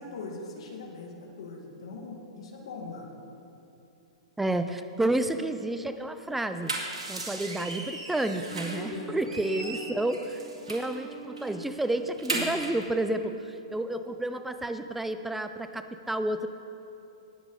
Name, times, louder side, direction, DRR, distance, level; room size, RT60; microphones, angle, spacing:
voice 1, 0.0-3.1 8.7-9.8, left 3 dB, 65° left, 2 dB, 1.8 m, -41 dB
voice 2, 4.4-6.7 7.1-10.4 10.7-16.5, right 1 dB, 5° right, 9 dB, 0.4 m, -30 dB
sound 1, 6.4-8.9 9.2-11.0 11.4-11.5 11.8-12.8, right 2 dB, 85° right, 2.1 m, -36 dB
Wind instrument woodwind instrument, 8.2-12.5, right 4 dB, 45° right, 2.8 m, -46 dB
19.0 x 7.1 x 3.9 m, 2.8 s
hypercardioid pair, 120°, 3 cm